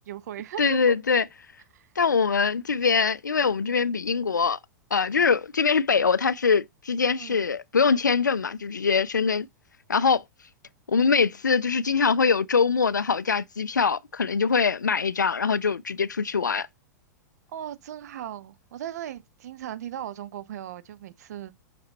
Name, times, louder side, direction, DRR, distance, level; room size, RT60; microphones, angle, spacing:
voice 1, 0.1-1.0 1.7-1.9 7.1-7.4 17.5-21.6, right 11 dB, 65° right, 0.8 m, -38 dB
voice 2, 0.6-1.2 2.0-4.6 4.9-9.5 9.9-10.2 10.9-16.7, left 5 dB, 90° left, 0.4 m, -23 dB
5.9 x 5.8 x 2.8 m
figure-of-eight pair, 100°, 10 cm